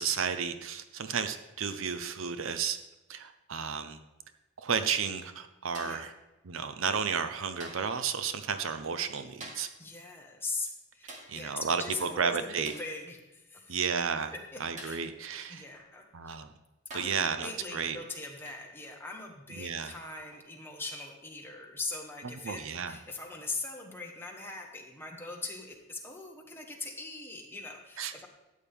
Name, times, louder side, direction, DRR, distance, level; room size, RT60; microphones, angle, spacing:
voice 1, 0.0-2.8 3.1-4.0 4.6-6.1 6.4-9.7 11.3-12.7 13.7-14.3 14.6-15.6 16.1-16.5 16.9-18.0 19.5-19.9 22.4-22.9 28.0-28.1, right 6 dB, 65° right, 10 dB, 0.6 m, -32 dB
sound 1, 5.7-6.1 7.6-8.0 9.4-9.8 11.1-11.4 12.6-13.0 14.8-15.1 16.2-16.3 16.9-17.3 18.4-18.7 20.3-20.5, right 1 dB, 35° right, 1.7 m, -47 dB
voice 2, 9.8-13.8 14.5-15.0 15.5-16.4 16.9-28.3, left 3 dB, 10° left, 1 dB, 1.3 m, -41 dB
13.0 x 8.5 x 3.6 m, 1.0 s
head